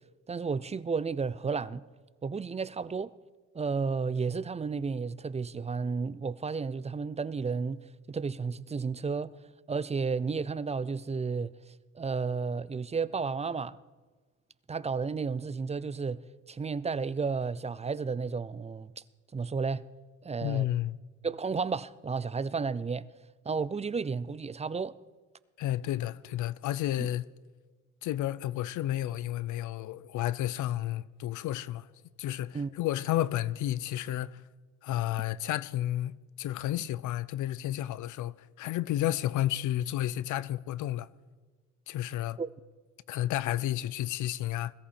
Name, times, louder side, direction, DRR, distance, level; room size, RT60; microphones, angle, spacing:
voice 1, 0.3-1.8 2.2-3.1 3.5-9.3 9.7-13.8 14.7-16.2 16.5-19.0 19.3-19.9 20.2-20.7 21.2-23.1 23.4-24.9 27.0-27.1 32.5-32.7 42.4-42.5, right 5 dB, 20° right, 0.5 m, -32 dB
voice 2, 20.4-21.0 25.6-27.3 28.0-31.9 32.2-34.4 34.8-41.1 41.9-42.4 43.1-44.7, left 13 dB, 80° left, 0.6 m, -31 dB
21.0 x 14.0 x 4.4 m
cardioid pair, 90°, 30 cm